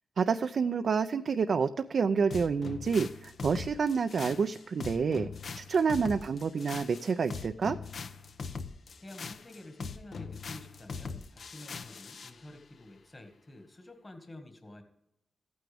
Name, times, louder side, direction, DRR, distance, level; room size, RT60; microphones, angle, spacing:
voice 1, 0.2-5.3 5.6-7.8, right 5 dB, 65° right, 9 dB, 0.4 m, -28 dB
sound 1, 2.3-12.4, left 5 dB, 70° left, 0.8 m, -41 dB
voice 2, 9.0-14.8, left 1 dB, 30° left, 5 dB, 1.7 m, -50 dB
14.0 x 9.3 x 3.5 m, 0.87 s
supercardioid pair, 45°, 0 cm